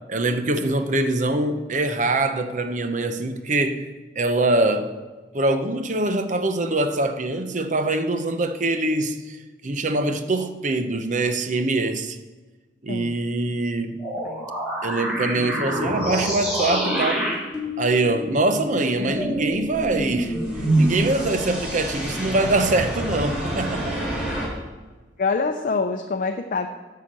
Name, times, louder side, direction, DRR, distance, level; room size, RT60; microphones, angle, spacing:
voice 1, 0.1-4.9 5.3-9.4 9.6-12.2 12.8-14.0 14.8-17.3 17.8-20.4 20.8-24.2, right 2 dB, 45° right, 0.8 m, -23 dB
sound 1, 14.0-24.5, right 1 dB, 5° right, 3.3 m, -26 dB
voice 2, 14.2-14.5 25.2-26.7, left 4 dB, 50° left, 0.6 m, -25 dB
9.8 x 5.8 x 7.5 m
head